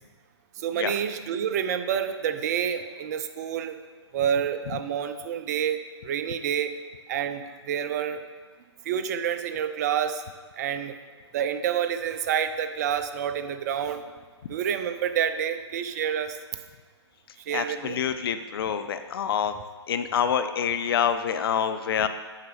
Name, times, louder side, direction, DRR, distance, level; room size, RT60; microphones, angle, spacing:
voice 1, 0.6-3.8 4.1-6.8 7.1-8.2 8.8-10.2 10.6-10.9 11.3-14.0 14.5-16.4 17.5-18.0, right 8 dB, 35° right, 9 dB, 0.5 m, -28 dB
voice 2, 17.5-19.5 19.9-22.1, left 8 dB, 55° left, 10 dB, 0.4 m, -26 dB
8.5 x 5.9 x 3.1 m, 1.5 s
figure-of-eight pair, 130°, 15 cm